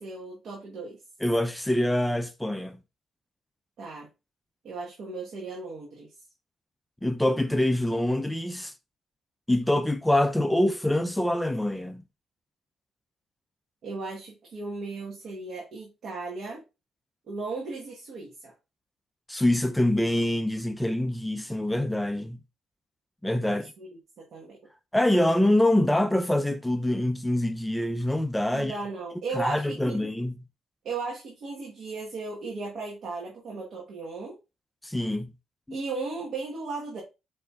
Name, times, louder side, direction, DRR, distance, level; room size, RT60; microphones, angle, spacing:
voice 1, 0.0-1.0 3.8-4.1 4.6-6.1 13.8-16.6 17.3-18.5 23.4-24.6 28.5-30.0 30.8-34.4 35.7-37.0, right 3 dB, 65° right, 1.2 m, -36 dB
voice 2, 1.2-2.8 7.0-8.7 9.5-12.0 19.3-22.4 23.2-23.7 24.9-28.7 29.3-30.3 34.8-35.3, left 1 dB, 5° left, 0.5 m, -25 dB
4.8 x 4.3 x 2.4 m
cardioid pair, 90°, 0 cm